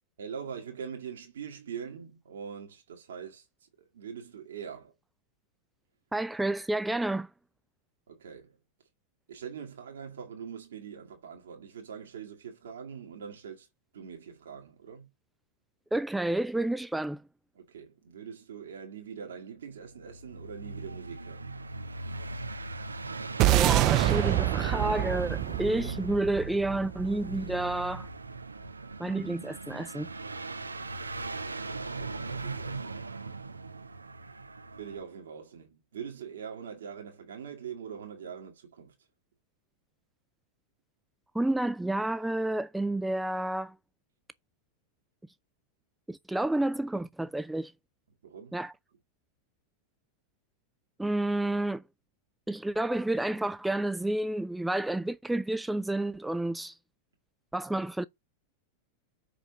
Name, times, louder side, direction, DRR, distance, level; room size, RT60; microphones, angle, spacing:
voice 1, 0.2-3.5 3.8-4.9 8.1-8.6 9.3-13.7 13.9-15.1 17.5-21.5 31.8-33.1 34.8-38.9 48.2-48.6, right 7 dB, 65° right, 1.9 m, -43 dB
voice 2, 6.1-7.3 15.9-17.2 23.5-28.1 29.0-30.1 41.3-43.7 46.1-47.7 48.5-48.7 51.0-51.8 52.5-56.8 57.5-58.0, right 1 dB, 5° right, 0.4 m, -30 dB
sound 1, 19.8-35.0, right 3 dB, 80° right, 0.7 m, -39 dB
sound 2, 23.4-27.8, right 15 dB, 40° right, 0.7 m, -26 dB
5.7 x 5.1 x 6.5 m
figure-of-eight pair, 90°, 0 cm